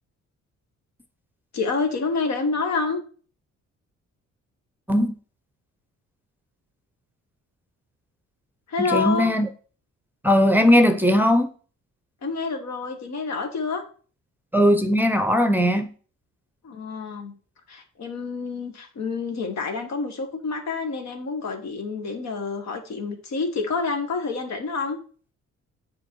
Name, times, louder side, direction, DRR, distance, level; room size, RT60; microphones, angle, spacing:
voice 1, 1.5-3.0 8.7-9.3 12.2-13.8 16.6-17.3 17.7-25.0, left 4 dB, 65° left, 1.6 m, -28 dB
voice 2, 8.8-9.5 10.2-11.5 14.5-15.9, equal, 5° right, 0.7 m, -19 dB
7.2 x 4.6 x 4.6 m
cardioid pair, 90°, 30 cm